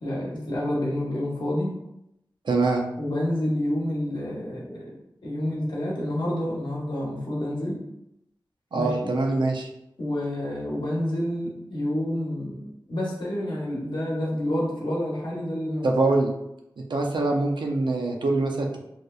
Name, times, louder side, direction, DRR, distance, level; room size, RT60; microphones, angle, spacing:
voice 1, 0.0-1.7 3.0-4.9 5.2-7.8 8.7-9.1 10.0-12.6 12.9-16.0, left 1 dB, 75° left, -5 dB, 0.8 m, -28 dB
voice 2, 2.5-2.8 8.7-9.7 15.8-16.3 16.8-18.9, right 3 dB, 75° right, 2 dB, 0.4 m, -24 dB
2.9 x 2.0 x 2.3 m, 0.82 s
wide cardioid pair, 50°, 8 cm